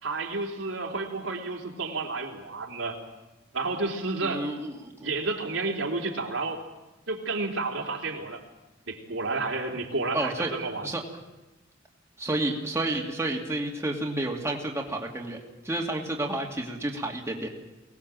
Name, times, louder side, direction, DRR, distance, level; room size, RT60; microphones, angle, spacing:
voice 1, 0.0-3.0 3.5-4.4 5.0-6.6 7.1-8.4 8.9-10.9, right 3 dB, 80° right, -1 dB, 3.5 m, -31 dB
voice 2, 4.2-5.1 10.1-10.5 10.8-11.0 12.2-15.4 15.6-17.5, right 1 dB, 15° right, -1 dB, 2.4 m, -30 dB
23.5 x 18.5 x 7.6 m, 1.1 s
head